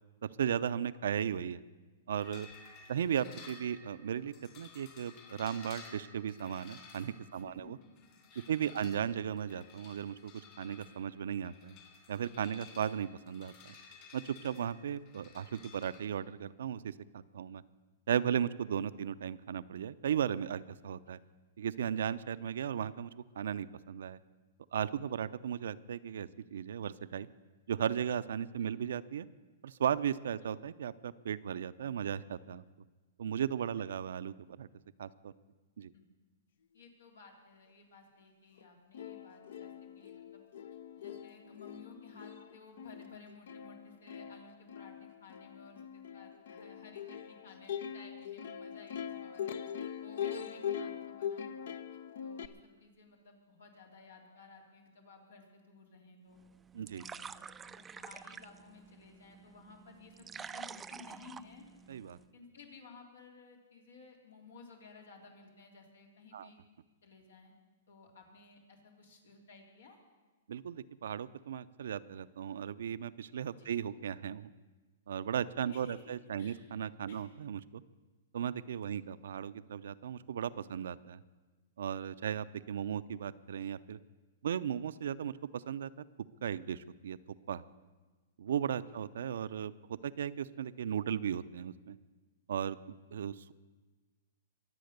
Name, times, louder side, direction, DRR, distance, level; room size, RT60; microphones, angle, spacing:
voice 1, 0.2-1.6 2.1-2.5 2.9-7.8 8.5-10.3 10.6-11.8 12.1-13.7 14.1-17.6 18.1-21.2 21.6-24.2 24.7-27.3 27.7-29.3 29.6-32.6 33.2-34.7 35.0-35.3 35.8-35.9 56.7-57.0 61.9-62.2 66.3-66.5 70.5-74.5 75.1-77.8 78.3-81.2 81.8-84.0 84.4-86.0 86.4-87.2 87.5-87.6 88.4-92.0 92.5-93.5, right 8 dB, 75° right, 14 dB, 0.5 m, -36 dB
sound 1, 2.2-16.0, left 5 dB, 40° left, 2.9 m, -55 dB
voice 2, 7.3-7.9 8.3-8.7 12.6-12.7 14.5-14.6 21.1-21.2 28.6-28.7 30.4-30.5 35.9-36.0 36.7-40.4 40.9-49.5 50.0-51.7 52.2-56.4 56.9-61.7 62.3-66.6 67.0-67.5 67.9-70.0 73.6-73.7 75.4-76.6 77.1-77.2 78.7-79.0 88.8-89.0, left 4 dB, 85° left, 2 dB, 3.4 m, -56 dB
Plucked string instrument, 38.6-38.7 38.9-52.5, left 8 dB, 70° left, 0.8 m, -42 dB
sound 2, 56.3-62.3, right 6 dB, 15° right, 0.4 m, -49 dB
23.0 x 7.7 x 6.6 m, 1.3 s
hypercardioid pair, 140°, 0 cm